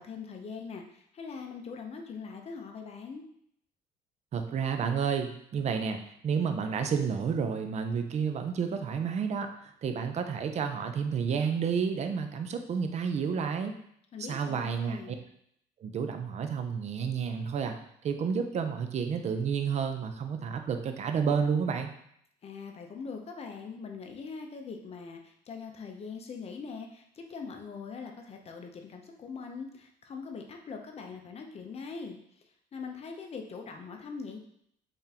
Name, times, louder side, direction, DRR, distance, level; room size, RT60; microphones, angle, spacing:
voice 1, 0.0-3.2 14.1-15.2 22.4-32.2 32.7-34.4, left 5 dB, 35° left, 3 dB, 0.6 m, -42 dB
voice 2, 4.3-13.7 14.3-15.0 15.8-17.8 18.0-21.9, right 6 dB, 40° right, 6 dB, 0.5 m, -30 dB
3.7 x 3.5 x 2.8 m, 0.70 s
cardioid pair, 110°, 17 cm